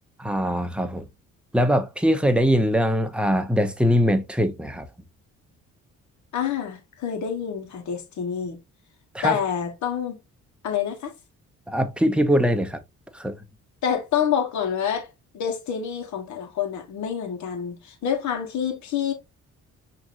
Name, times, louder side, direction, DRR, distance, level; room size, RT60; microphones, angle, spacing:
voice 1, 0.2-1.1 1.5-4.9 9.1-9.4 11.7-12.8 13.1-13.3, equal, 5° right, 0.7 m, -22 dB
voice 2, 6.3-8.6 9.2-10.2 10.6-11.1 13.8-19.1, left 8 dB, 70° left, 1.3 m, -27 dB
5.9 x 2.9 x 2.5 m
cardioid pair, 90°, 30 cm